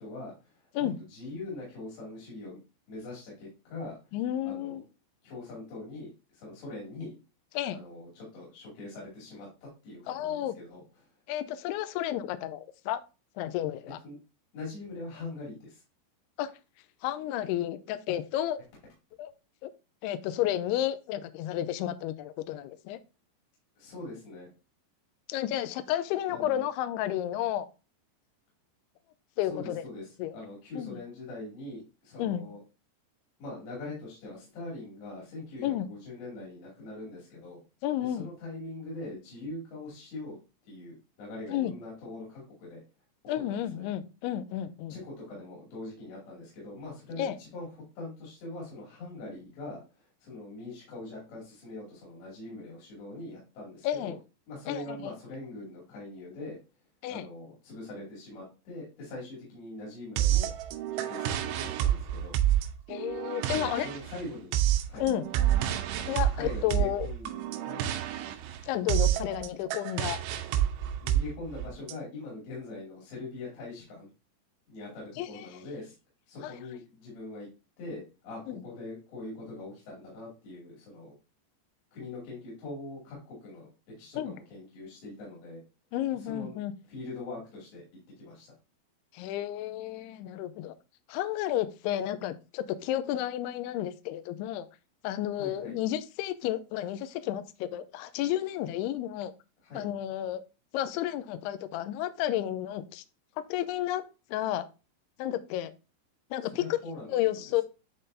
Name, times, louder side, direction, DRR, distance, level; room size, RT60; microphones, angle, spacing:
voice 1, 0.0-2.6 2.9-3.9 4.4-4.8 5.2-7.2 7.7-9.5 9.8-10.8 14.0-14.2 14.5-15.8 23.8-24.5 26.3-26.6 29.5-32.6 33.4-37.6 38.0-40.4 40.7-42.8 43.5-43.9 44.9-47.7 48.0-54.1 54.5-56.6 57.1-60.5 60.9-62.4 63.5-64.5 64.8-65.1 66.3-67.8 71.0-74.1 74.7-75.9 76.3-77.5 77.8-81.1 81.9-83.7 84.0-85.6 86.2-86.6 86.9-87.8 88.2-88.5 95.4-95.7 99.6-99.9 106.4-107.4, left 2 dB, 70° left, -5 dB, 4.6 m, -42 dB
voice 2, 4.1-4.8 7.5-7.8 10.1-10.5 11.3-13.0 13.4-14.0 16.4-16.5 17.0-18.6 19.2-19.3 19.6-19.7 20.0-23.0 25.3-27.7 29.4-29.8 30.2-30.4 30.7-31.0 32.2-32.5 35.6-35.9 37.8-38.3 41.5-41.7 43.3-45.0 47.2-47.4 53.8-54.2 54.7-55.1 57.0-57.2 62.9-63.9 65.0-65.2 66.1-67.1 68.7-70.2 75.2-75.5 76.4-76.5 78.5-78.6 84.2-84.3 85.9-86.7 89.1-90.8 91.1-94.7 95.0-99.3 99.7-100.4 100.7-103.0 103.5-104.1 104.3-104.7 105.2-105.7 106.3-106.8 107.1-107.6, left 12 dB, 85° left, 12 dB, 2.3 m, -31 dB
sound 1, 60.2-71.9, right 11 dB, 80° right, 2.6 m, -29 dB
11.0 x 3.7 x 2.6 m, 0.30 s
omnidirectional pair, 5.3 m